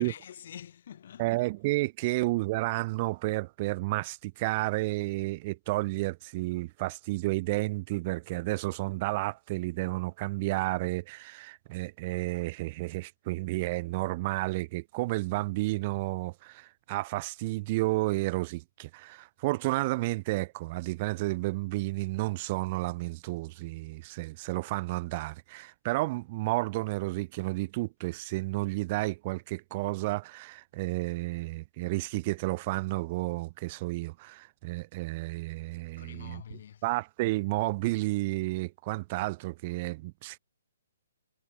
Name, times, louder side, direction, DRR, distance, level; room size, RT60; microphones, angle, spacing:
voice 1, 0.0-1.4 2.0-2.2 36.0-36.9, left 9 dB, 55° left, 7.8 m, -46 dB
voice 2, 1.2-36.4 36.8-40.4, right 21 dB, 35° right, 0.4 m, -31 dB
hypercardioid pair, 140°, 0 cm